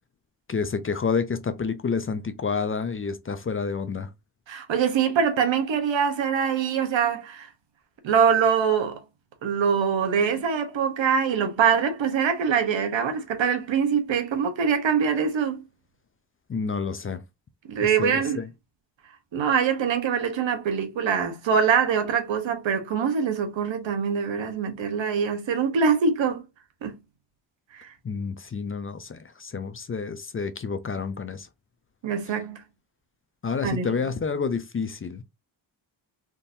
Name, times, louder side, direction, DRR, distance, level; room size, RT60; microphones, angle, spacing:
voice 1, 0.5-4.1 16.5-17.2 17.8-18.5 28.0-31.5 32.3-32.4 33.4-35.2, left 5 dB, 30° left, 0.5 m, -29 dB
voice 2, 4.5-7.5 8.0-9.0 9.4-15.6 17.7-18.4 19.3-26.4 26.8-26.9 27.7-27.9 32.0-32.6 33.6-33.9, right 6 dB, 80° right, 1.0 m, -24 dB
3.7 x 2.6 x 2.5 m
cardioid pair, 75°, 45 cm